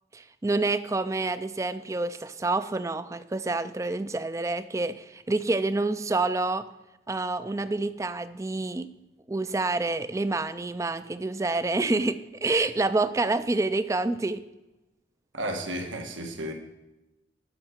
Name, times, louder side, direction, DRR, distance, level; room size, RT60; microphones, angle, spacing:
voice 1, 0.1-6.6 7.1-8.9 9.3-14.4, right 2 dB, 15° right, 13 dB, 0.3 m, -28 dB
voice 2, 15.3-16.5, right 1 dB, 85° right, 4 dB, 1.4 m, -33 dB
12.0 x 5.8 x 4.4 m, 1.0 s
head